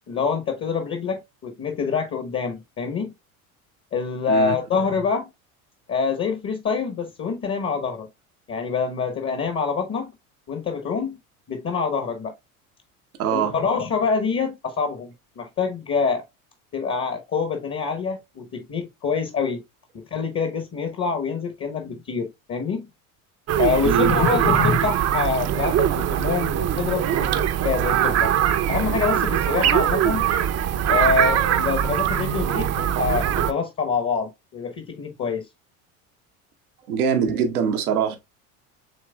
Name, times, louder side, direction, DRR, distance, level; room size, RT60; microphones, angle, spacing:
voice 1, 0.1-3.1 3.9-5.3 5.9-8.1 8.5-10.1 10.5-11.2 11.5-12.3 13.3-16.2 16.7-19.6 20.1-22.8 23.6-28.3 28.7-30.3 30.9-35.5, left 5 dB, 30° left, 1.0 m, -26 dB
voice 2, 13.2-13.6 23.8-24.3 36.9-38.2, right 7 dB, 85° right, 0.9 m, -23 dB
sound 1, 23.5-33.5, right 10 dB, 35° right, 0.6 m, -22 dB
7.4 x 3.1 x 2.2 m
hypercardioid pair, 75°, 43 cm